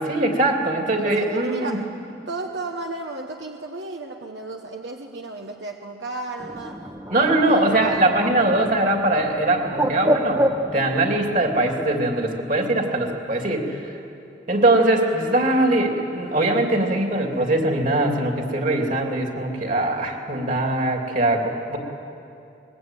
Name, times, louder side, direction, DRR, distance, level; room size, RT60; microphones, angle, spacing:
voice 1, 0.0-1.8 7.1-10.5 10.7-14.0 14.5-21.8, right 1 dB, 45° right, 2 dB, 3.1 m, -21 dB
voice 2, 1.0-6.9 7.2-8.0, right 3 dB, 75° right, 2 dB, 1.3 m, -34 dB
Bird, 6.4-11.9, equal, 20° right, 1.1 m, -28 dB
24.0 x 21.5 x 9.2 m, 2.7 s
head